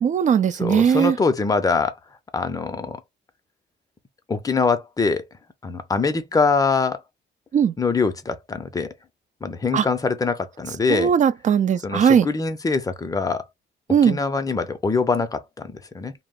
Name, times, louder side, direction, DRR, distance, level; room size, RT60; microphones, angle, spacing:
voice 1, 0.0-1.2 7.5-7.7 9.7-9.9 10.9-12.3 13.9-14.2, right 7 dB, 40° right, 0.4 m, -18 dB
voice 2, 0.6-2.0 2.3-3.0 4.3-5.2 5.6-7.0 7.8-8.9 9.4-11.1 11.8-13.5 14.0-16.1, left 4 dB, 20° left, 0.5 m, -23 dB
2.0 x 2.0 x 3.6 m
cardioid pair, 90°, 20 cm